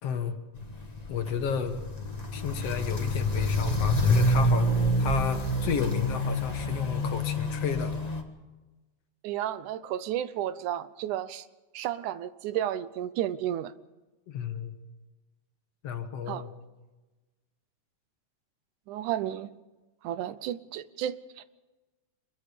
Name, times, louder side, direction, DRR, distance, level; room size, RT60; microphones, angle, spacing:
voice 1, 0.0-0.4 1.1-1.8 2.3-4.7 5.0-7.9 14.3-14.8 15.8-16.5, left 7 dB, 60° left, 7 dB, 2.4 m, -32 dB
Walk footsteps, 0.6-8.2, left 1 dB, 20° left, 1.0 m, -27 dB
voice 2, 9.2-11.5 11.7-13.7 16.3-16.5 18.9-19.5 20.0-21.4, right 11 dB, 90° right, 15 dB, 2.3 m, -32 dB
25.0 x 22.0 x 5.2 m, 1.2 s
omnidirectional pair, 3.4 m